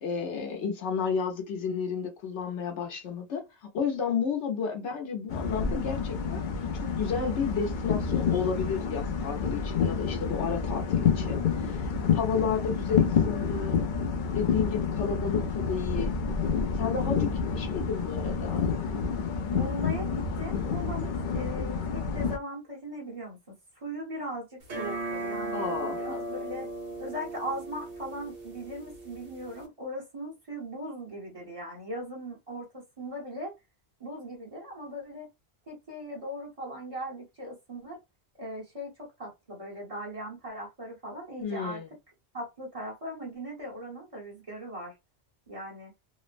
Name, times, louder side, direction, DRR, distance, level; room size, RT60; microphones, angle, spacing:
voice 1, 0.0-6.4 6.7-13.8 14.3-16.1 16.8-18.7 25.5-26.2 41.4-41.9, left 6 dB, 90° left, 1.1 m, -32 dB
sound 1, 5.3-22.4, left 6 dB, 60° left, 0.6 m, -29 dB
voice 2, 12.4-13.0 19.5-26.7 27.0-33.5 34.0-35.3 35.7-38.0 38.4-41.8 42.3-44.9 45.5-45.9, equal, 30° right, 1.1 m, -39 dB
sound 2, 24.6-29.7, right 2 dB, 75° right, 1.2 m, -37 dB
3.0 x 2.1 x 2.5 m
omnidirectional pair, 1.1 m